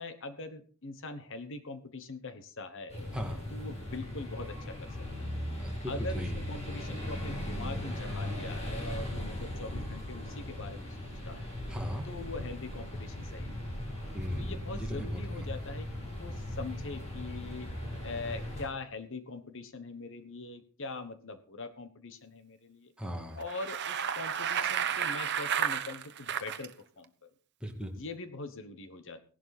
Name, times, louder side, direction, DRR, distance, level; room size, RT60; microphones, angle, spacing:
voice 1, 0.0-2.9 3.5-5.3 5.9-11.5 12.0-13.6 14.4-17.7 18.0-22.9 23.4-27.1 27.9-29.3, left 3 dB, 60° left, 10 dB, 1.3 m, -42 dB
sound 1, 2.9-18.7, left 1 dB, 30° left, 6.9 m, -38 dB
voice 2, 5.6-6.4 11.7-12.1 14.1-15.5 23.0-23.4 27.6-27.9, equal, 5° right, 2 dB, 2.3 m, -38 dB
Bicycle, 23.4-26.7, right 8 dB, 55° right, 0.9 m, -32 dB
17.0 x 11.5 x 4.2 m, 0.39 s
head